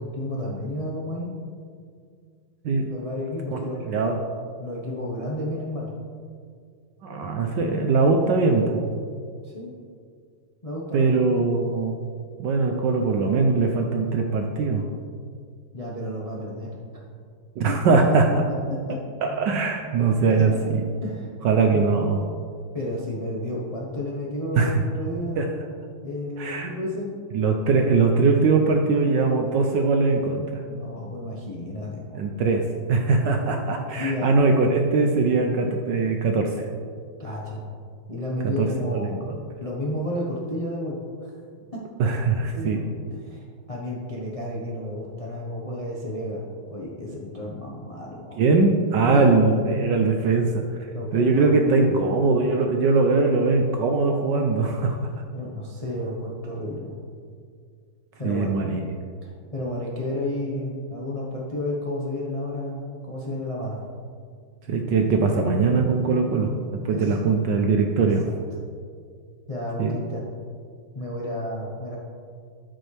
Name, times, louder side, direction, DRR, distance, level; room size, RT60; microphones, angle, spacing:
voice 1, 0.1-1.3 2.9-3.8 4.6-5.9 9.4-9.7 10.6-11.1 15.7-16.7 17.7-17.8 18.7-19.0 20.3-20.6 21.0-21.3 21.7-21.9 22.7-25.7 26.0-27.1 30.7-32.2 34.0-34.3 37.2-37.7 38.1-39.3 39.6-41.0 42.5-42.7 43.2-48.4 49.0-49.5 50.9-52.1 55.3-57.0 58.2-58.5 59.2-63.8 66.9-67.2 68.0-68.1 69.5-70.2 70.9-72.0, left 1 dB, 35° left, -4 dB, 0.5 m, -31 dB
voice 2, 3.8-4.2 7.0-8.8 10.9-12.0 12.4-14.8 17.6-18.5 19.2-20.8 21.4-22.2 24.5-24.8 25.4-25.5 26.4-26.7 27.3-30.4 32.1-32.6 32.9-36.7 38.4-39.4 42.0-42.8 48.4-50.6 51.1-55.0 58.2-58.9 64.7-68.3 69.8-69.9, right 4 dB, 70° right, 3 dB, 1.1 m, -21 dB
13.0 x 6.2 x 3.3 m, 2.2 s
omnidirectional pair, 2.4 m